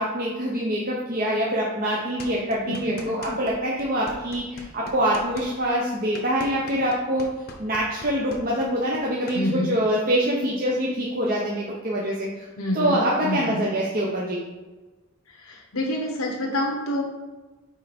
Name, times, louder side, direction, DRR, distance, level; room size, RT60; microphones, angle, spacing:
voice 1, 0.0-7.3 7.6-12.5 12.7-14.4, equal, 45° right, -4 dB, 0.9 m, -25 dB
sound 1, 2.2-3.5 3.8-9.4, left 2 dB, 50° left, 0.9 m, -41 dB
voice 2, 2.7-3.3 9.3-9.8 12.6-13.6 15.4-17.0, left 1 dB, 80° left, -1 dB, 1.0 m, -28 dB
4.5 x 4.4 x 5.2 m, 1.2 s
head